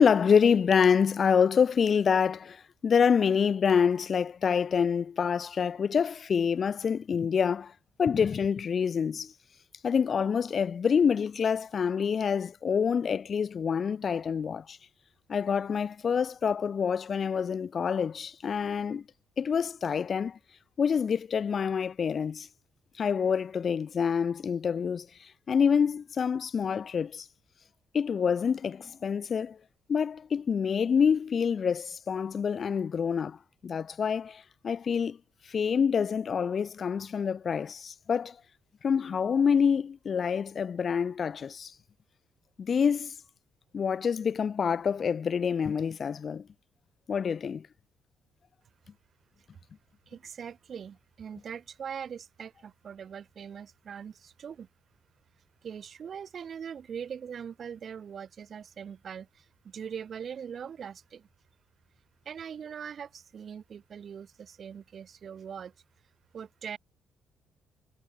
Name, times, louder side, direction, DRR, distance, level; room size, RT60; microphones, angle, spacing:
voice 1, 0.0-7.7 8.0-9.3 9.8-14.8 15.3-19.0 19.4-20.4 20.8-22.5 23.0-27.3 27.9-29.6 29.9-33.4 33.6-35.2 35.5-38.4 38.8-41.7 42.6-43.1 43.7-46.4 47.1-47.7, left 6 dB, 50° left, 0.8 m, -26 dB
voice 2, 50.1-54.7 55.6-61.3 62.2-65.7 66.3-66.8, right 7 dB, 55° right, 1.7 m, -41 dB
cardioid pair, 90°, 0 cm